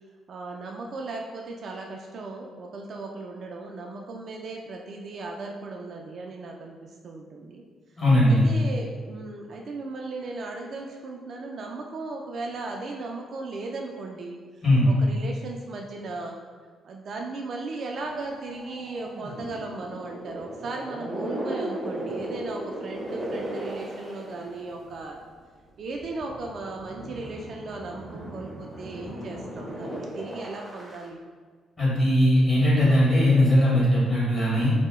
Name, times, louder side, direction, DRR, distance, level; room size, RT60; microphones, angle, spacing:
voice 1, 0.3-7.6 8.3-14.4 14.8-16.4 16.8-25.2 25.8-31.2, right 3 dB, 60° right, 1 dB, 0.3 m, -36 dB
voice 2, 8.0-8.4 14.6-14.9 31.8-34.7, left 1 dB, 35° left, -7 dB, 1.4 m, -19 dB
sound 1, 17.9-25.2 25.8-31.1, right 1 dB, 10° right, 0.6 m, -37 dB
2.8 x 2.0 x 3.5 m, 1.5 s
cardioid pair, 90°, 0 cm